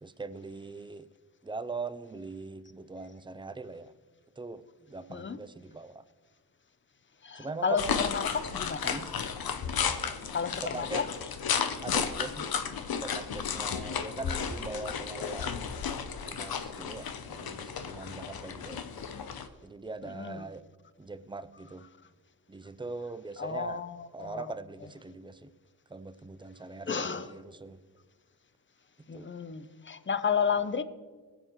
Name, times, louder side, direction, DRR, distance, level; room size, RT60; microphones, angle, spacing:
voice 1, 0.0-1.1 1.4-3.9 4.4-6.0 7.3-8.0 8.8-9.1 10.6-11.0 11.8-12.5 13.0-15.9 16.2-18.8 19.6-20.6 21.0-21.9 22.5-23.8 24.1-25.5 25.9-27.8 29.1-29.3, right 3 dB, 15° right, 12 dB, 0.5 m, -41 dB
voice 2, 7.2-8.9 10.3-11.1 20.0-20.5 23.4-24.5 26.9-27.3 29.1-30.8, left 6 dB, 30° left, 13 dB, 0.7 m, -32 dB
sound 1, 7.8-19.5, left 6 dB, 70° left, 0.8 m, -33 dB
21.0 x 8.0 x 3.1 m, 1.5 s
cardioid pair, 70°, 37 cm